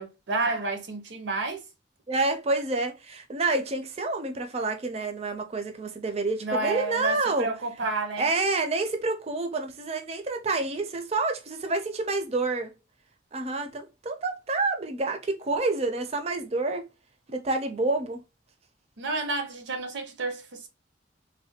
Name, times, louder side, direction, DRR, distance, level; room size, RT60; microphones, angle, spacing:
voice 1, 0.0-1.6 6.4-8.3 19.0-20.7, right 3 dB, 75° right, 0.7 m, -30 dB
voice 2, 2.1-7.5 8.2-12.7 13.3-16.9 17.3-18.2, right 3 dB, 35° right, 0.5 m, -28 dB
3.2 x 2.2 x 2.8 m
head